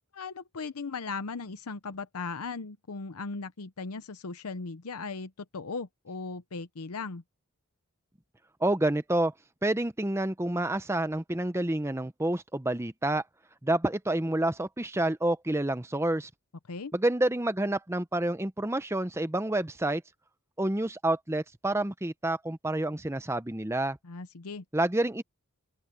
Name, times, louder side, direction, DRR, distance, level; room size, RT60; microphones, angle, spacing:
voice 1, 0.1-7.2 16.7-16.9 24.0-24.6, left 4 dB, 85° left, 0.8 m, -38 dB
voice 2, 8.6-9.3 9.6-13.2 13.6-16.3 16.9-20.0 20.6-24.0 24.7-25.2, right 1 dB, 10° right, 0.7 m, -28 dB
open air
head